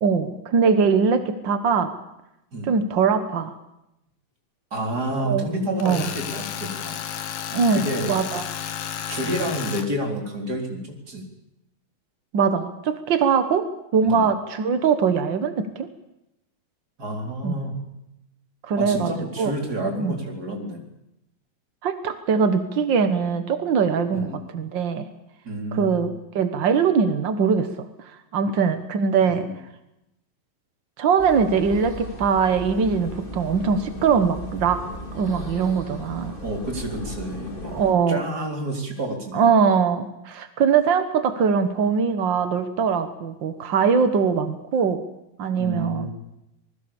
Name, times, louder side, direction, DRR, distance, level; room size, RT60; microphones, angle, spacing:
voice 1, 0.0-1.9 2.7-3.5 5.2-5.5 5.8-6.0 7.5-8.4 12.3-15.9 17.4-17.6 18.7-19.5 20.0-20.1 21.8-25.1 25.7-27.9 28.3-29.5 31.0-34.8 35.1-36.4 37.7-38.2 39.3-45.1 45.4-46.1, right 6 dB, 65° right, 9 dB, 1.1 m, -22 dB
voice 2, 4.7-6.9 7.7-8.1 9.1-11.2 14.0-14.3 17.0-17.7 18.8-20.8 24.1-24.4 25.5-26.1 29.3-29.6 36.4-37.7 38.1-39.5 45.6-46.1, right 1 dB, 25° right, 2 dB, 4.5 m, -29 dB
Tools, 5.8-9.9, left 9 dB, 85° left, 3.4 m, -32 dB
sound 1, 31.2-37.9, equal, 15° left, 2.7 m, -36 dB
26.5 x 20.5 x 7.1 m, 0.86 s
omnidirectional pair, 4.1 m